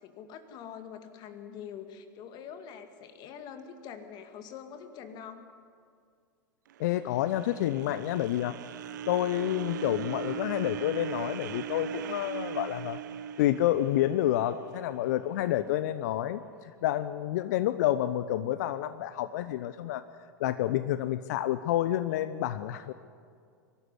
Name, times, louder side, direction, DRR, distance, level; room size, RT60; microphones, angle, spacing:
voice 1, 0.0-5.5 15.3-15.7, left 8 dB, 40° left, 7 dB, 2.2 m, -45 dB
sound 1, 6.7-14.9, right 9 dB, 65° right, 0.8 m, -39 dB
voice 2, 6.8-8.6 9.1-13.0 13.4-20.0 20.4-22.9, left 13 dB, 60° left, 13 dB, 0.7 m, -29 dB
23.5 x 13.0 x 9.8 m, 2.2 s
figure-of-eight pair, 95°, 11 cm